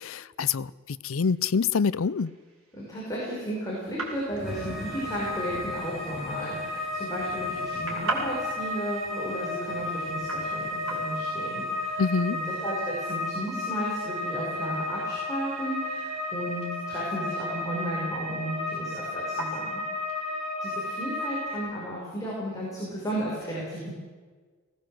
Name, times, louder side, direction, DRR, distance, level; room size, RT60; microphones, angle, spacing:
voice 1, 0.0-2.3 12.0-12.4, left 5 dB, 70° left, 0.5 m, -26 dB
sound 1, 1.0-20.6, right 2 dB, 85° right, 4.8 m, -43 dB
voice 2, 2.7-12.0 12.3-20.3 20.6-23.9, right 1 dB, 15° left, 5.3 m, -34 dB
Thunder / Rain, 3.9-14.8 15.2-15.7, left 1 dB, 35° left, 2.9 m, -46 dB
sound 2, 4.5-21.6, left 2 dB, ahead, 3.9 m, -33 dB
19.0 x 18.0 x 7.7 m
head